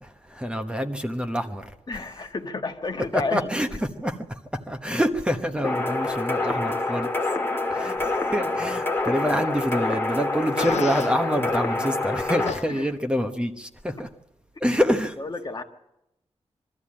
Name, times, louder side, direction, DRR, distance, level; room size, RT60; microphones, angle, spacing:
voice 1, 0.0-1.7 3.1-4.2 4.7-7.1 7.7-14.1 14.6-15.2, equal, 10° right, 6 dB, 1.0 m, -26 dB
voice 2, 1.9-3.4 12.7-12.9 15.2-15.6, left 3 dB, 40° left, 5 dB, 1.5 m, -30 dB
sound 1, 5.6-12.5, left 2 dB, 20° left, 2.1 m, -26 dB
Fart, 10.6-11.2 12.5-12.6, left 6 dB, 80° left, 0.8 m, -32 dB
22.5 x 13.5 x 8.6 m, 0.86 s
wide cardioid pair, 160°, 11 cm